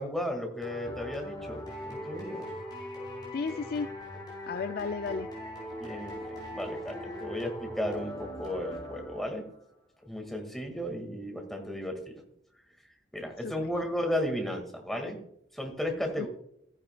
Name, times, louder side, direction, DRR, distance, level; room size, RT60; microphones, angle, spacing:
voice 1, 0.0-2.5 5.8-9.4 10.0-12.2 13.1-15.2 15.5-16.3, left 1 dB, ahead, 2 dB, 1.7 m, -34 dB
sound 1, 0.6-9.5, equal, 25° left, 4.6 m, -40 dB
voice 2, 3.3-3.9 4.5-5.3 13.4-13.7 16.2-16.3, left 5 dB, 55° left, 11 dB, 0.3 m, -33 dB
14.5 x 10.5 x 2.2 m, 0.73 s
head